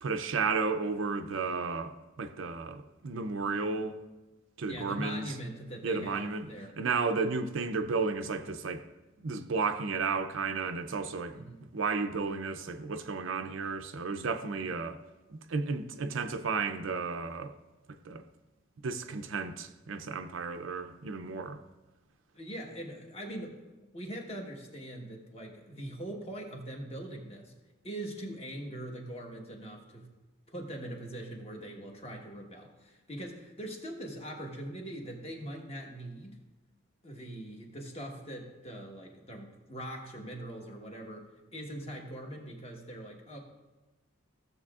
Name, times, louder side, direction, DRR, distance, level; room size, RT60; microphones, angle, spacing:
voice 1, 0.0-4.0 4.6-5.3 5.8-6.5 6.8-8.8 9.2-15.0 15.3-17.5 18.0-18.2 18.8-21.6, right 4 dB, 65° right, 0.5 m, -33 dB
voice 2, 4.7-6.7 11.3-11.6 22.3-23.6 23.9-27.5 27.8-30.1 30.5-36.4 37.0-43.4, right 1 dB, 30° left, 1.2 m, -42 dB
15.5 x 6.8 x 2.4 m
head